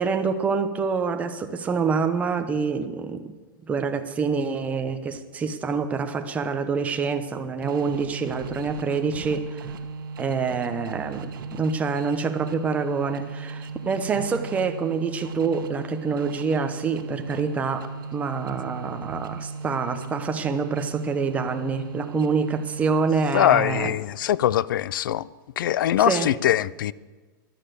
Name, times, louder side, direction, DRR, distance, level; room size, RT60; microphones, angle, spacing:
voice 1, 0.0-3.3 3.7-9.7 10.2-23.9 26.0-26.3, right 5 dB, 10° right, 0.9 m, -26 dB
sound 1, 7.6-23.8, right 4 dB, 75° right, 1.4 m, -36 dB
voice 2, 23.3-25.3 25.6-26.9, left 12 dB, 70° left, 0.5 m, -22 dB
13.5 x 12.0 x 6.9 m
supercardioid pair, 165°, 11 cm